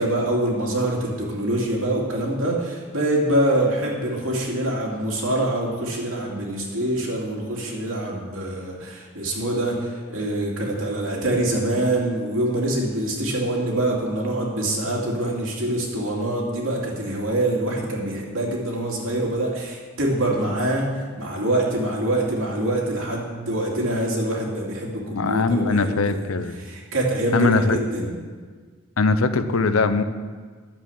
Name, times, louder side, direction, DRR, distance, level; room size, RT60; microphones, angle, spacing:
voice 1, 0.0-26.3 26.6-28.2, right 1 dB, 75° right, -2 dB, 2.6 m, -25 dB
voice 2, 25.1-26.6 27.3-27.8 29.0-30.0, left 3 dB, 85° left, 11 dB, 0.7 m, -21 dB
10.5 x 7.5 x 7.0 m, 1.5 s
head